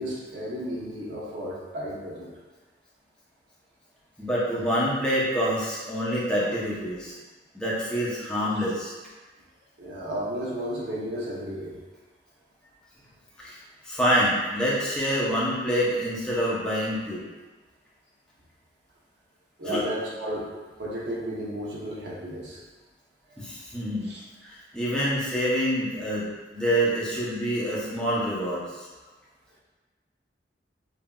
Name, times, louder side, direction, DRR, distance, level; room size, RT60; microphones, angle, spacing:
voice 1, 0.0-2.3 9.8-11.7 14.6-14.7 19.6-20.5 20.8-22.6 24.1-24.2, equal, 75° right, -4 dB, 0.9 m, -33 dB
voice 2, 4.2-7.2 7.5-8.9 13.4-13.6 13.8-17.2 19.6-19.8 23.4-24.1 24.4-28.9, equal, 5° left, -8 dB, 0.8 m, -26 dB
5.5 x 2.6 x 2.3 m, 1.3 s
head